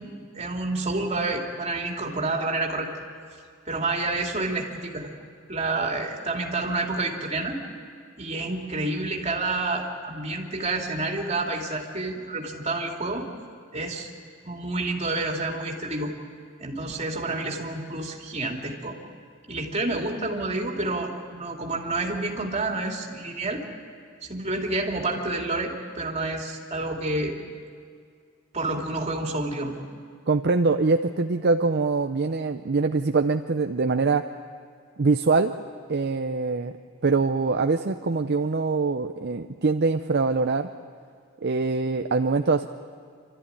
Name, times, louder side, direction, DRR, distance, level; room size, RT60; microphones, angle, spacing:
voice 1, 0.0-2.9 3.7-5.1 5.5-7.6 8.2-13.3 13.7-14.1 14.4-16.1 16.6-19.0 19.5-23.6 24.2-27.3 28.5-29.8, right 2 dB, 35° right, 0 dB, 2.7 m, -29 dB
voice 2, 30.3-34.3 35.0-35.5 35.9-36.7 37.0-40.7 41.4-42.7, right 4 dB, 50° right, 7 dB, 0.6 m, -23 dB
27.0 x 13.5 x 9.8 m, 2.2 s
head